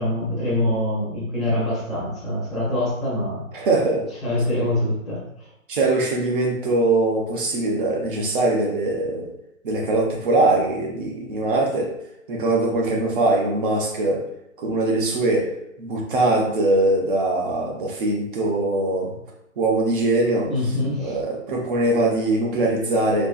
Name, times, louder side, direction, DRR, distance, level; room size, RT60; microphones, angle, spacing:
voice 1, 0.0-3.4 4.2-5.2 20.5-21.2, left 1 dB, ahead, -9 dB, 0.9 m, -24 dB
voice 2, 3.5-4.1 5.7-9.3 9.6-11.9 12.3-14.2 14.6-15.5 15.8-19.1 19.6-23.3, right 2 dB, 40° right, 0 dB, 0.9 m, -22 dB
4.4 x 3.0 x 2.5 m, 0.78 s
figure-of-eight pair, 135°, 42 cm